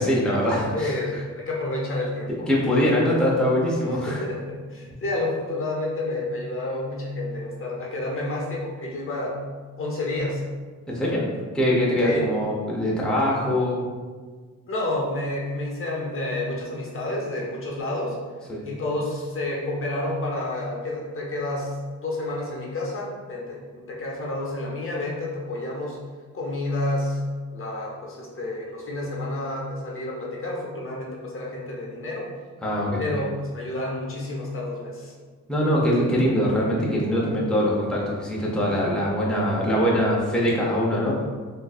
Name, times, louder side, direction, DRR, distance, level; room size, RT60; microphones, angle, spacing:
voice 1, 0.0-1.0 2.5-4.2 10.9-11.2 11.5-13.8 18.5-18.6 32.6-33.0 35.5-41.2, equal, 5° left, -5 dB, 0.7 m, -23 dB
voice 2, 0.5-2.5 3.1-3.2 3.8-9.5 9.8-10.4 12.0-12.2 14.7-18.2 18.6-26.0 26.3-27.2 27.5-32.3 33.0-35.1, left 2 dB, 45° left, -2 dB, 0.8 m, -29 dB
3.7 x 2.6 x 2.3 m, 1.5 s
cardioid pair, 85°, 30 cm